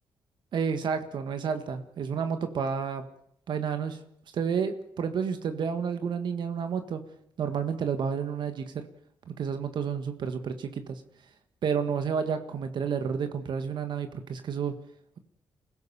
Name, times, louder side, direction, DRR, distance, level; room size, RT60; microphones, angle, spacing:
voice 1, 0.5-3.1 3.5-4.0 4.3-7.0 7.4-8.8 9.3-11.0 11.6-14.8, right 6 dB, 70° right, 8 dB, 1.7 m, -30 dB
24.5 x 16.0 x 7.0 m, 0.70 s
cardioid pair, 75°, 8 cm